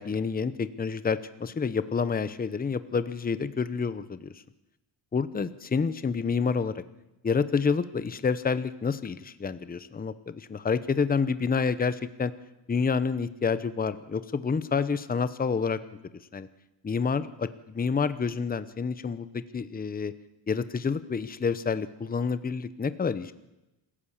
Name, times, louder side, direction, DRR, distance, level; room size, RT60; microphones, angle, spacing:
voice 1, 0.0-4.3 5.1-6.8 7.2-12.3 12.7-15.8 16.3-16.5 16.8-20.1 20.5-23.3, left 5 dB, 20° left, 14 dB, 0.8 m, -28 dB
26.5 x 15.0 x 7.3 m, 0.98 s
cardioid pair, 130°, 47 cm